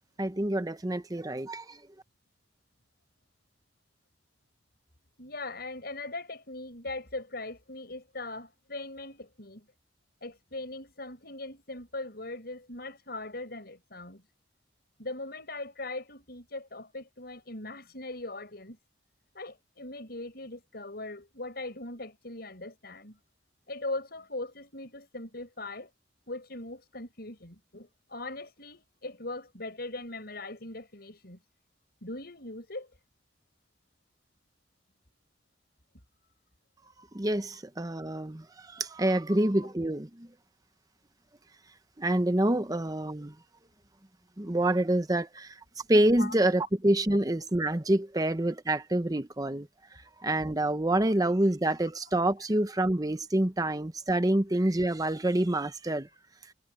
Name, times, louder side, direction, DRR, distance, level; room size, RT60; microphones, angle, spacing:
voice 1, 0.2-1.8 37.1-40.3 42.0-43.3 44.4-45.5 45.9-49.7 50.2-56.1, right 1 dB, 20° right, 0.9 m, -27 dB
voice 2, 5.2-9.7 10.2-14.2 15.0-18.8 19.3-23.2 23.7-25.9 26.3-31.4 32.0-32.9 39.3-39.4 46.2-46.4 52.8-52.9, left 2 dB, 60° left, 7.9 m, -40 dB
head